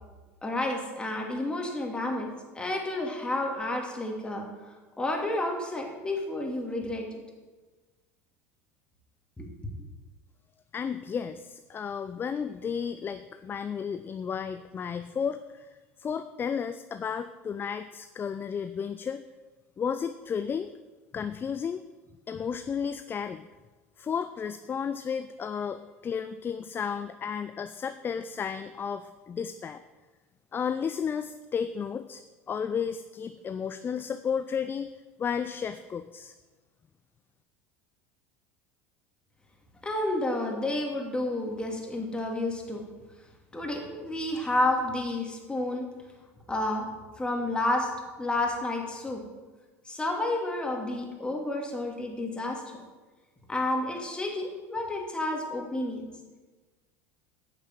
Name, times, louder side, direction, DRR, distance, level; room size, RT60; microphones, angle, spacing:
voice 1, 0.4-2.3 2.5-4.5 5.0-7.1 9.4-9.5 39.8-42.8 43.5-45.8 46.5-46.9 47.2-47.9 48.2-49.2 49.8-52.6 53.5-56.0, left 2 dB, 10° left, 1 dB, 2.7 m, -30 dB
voice 2, 10.7-15.7 16.0-19.2 19.8-20.7 21.1-21.8 22.3-23.4 24.0-29.8 30.5-32.2 32.5-34.9 35.2-36.3, left 7 dB, 30° left, 11 dB, 0.5 m, -33 dB
9.3 x 6.6 x 7.3 m, 1.3 s
hypercardioid pair, 90°, 8 cm